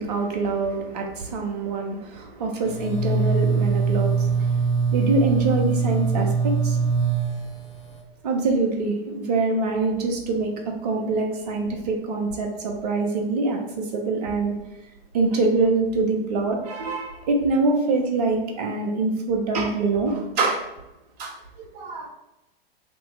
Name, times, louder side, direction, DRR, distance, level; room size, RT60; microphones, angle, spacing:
voice 1, 0.0-4.6 4.9-6.8 8.2-14.5 15.1-20.6 21.2-22.1, right 3 dB, 40° right, 2 dB, 0.9 m, -25 dB
sound 1, 2.7-8.0, right 5 dB, 55° left, 1.0 m, -23 dB
3.5 x 2.9 x 4.5 m, 0.91 s
figure-of-eight pair, 110°, 31 cm